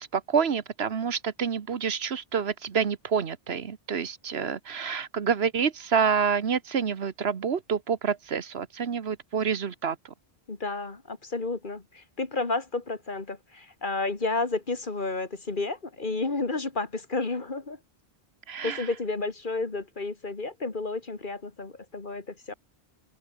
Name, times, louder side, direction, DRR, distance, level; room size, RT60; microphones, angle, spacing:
voice 1, 0.0-10.0 18.5-18.9, right 6 dB, 75° right, 1.4 m, -28 dB
voice 2, 10.5-17.8 18.6-22.5, left 3 dB, 50° left, 2.3 m, -31 dB
open air
omnidirectional pair, 1.1 m